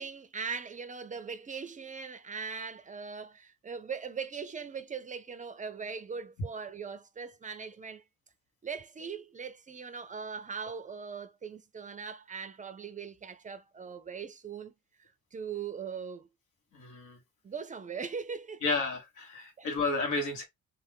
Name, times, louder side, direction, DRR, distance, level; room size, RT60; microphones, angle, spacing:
voice 1, 0.0-8.0 8.6-14.7 15.3-16.3 17.4-18.6 19.6-19.7, right 6 dB, 25° right, 0.4 m, -40 dB
voice 2, 16.7-17.2 18.6-20.4, left 3 dB, 85° left, 1.2 m, -32 dB
2.4 x 2.3 x 3.4 m
cardioid pair, 90°, 30 cm